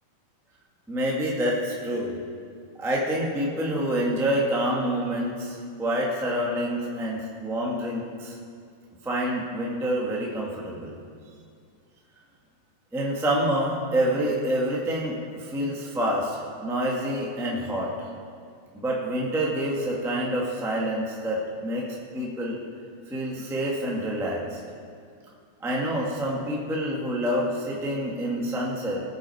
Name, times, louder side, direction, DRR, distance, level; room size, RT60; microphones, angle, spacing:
voice 1, 0.9-2.1 2.8-8.4 9.0-11.0 12.9-17.9 18.7-21.9 22.1-22.6 23.1-24.6 25.6-29.0, equal, 5° right, -3 dB, 0.5 m, -27 dB
19.0 x 7.6 x 4.8 m, 2.3 s
omnidirectional pair, 3.7 m